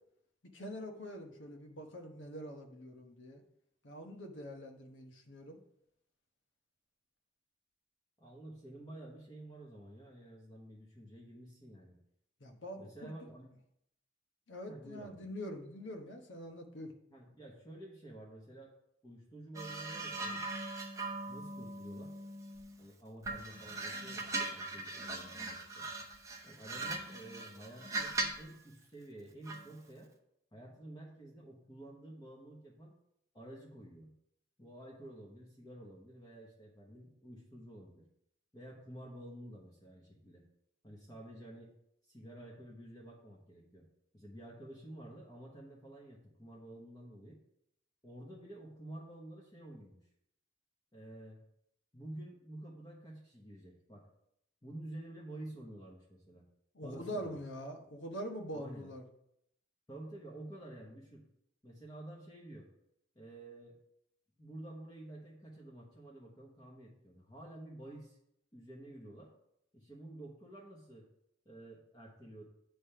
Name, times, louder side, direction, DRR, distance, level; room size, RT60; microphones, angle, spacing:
voice 1, 0.5-3.4 3.8-5.6 12.4-13.3 14.5-16.9 56.7-59.0, equal, 70° left, 3 dB, 1.1 m, -44 dB
voice 2, 8.2-12.0 12.8-13.5 14.7-15.2 17.1-18.7 19.0-20.4 21.3-22.1 22.8-25.9 26.4-30.1 30.5-32.9 33.3-34.1 34.6-38.0 38.5-40.4 40.8-41.7 42.0-43.9 44.1-47.4 48.0-50.0 50.9-51.4 51.9-54.1 54.6-56.4 56.8-57.4 58.5-58.9 59.9-61.2 61.6-62.7 63.1-63.8 64.4-68.2 68.5-69.3 69.7-71.1 71.4-72.4, right 1 dB, 20° left, -3 dB, 1.1 m, -50 dB
sound 1, 19.5-22.8 23.2-28.5 29.5-29.7, right 2 dB, 15° right, 0.7 m, -40 dB
9.4 x 3.4 x 5.6 m, 0.77 s
head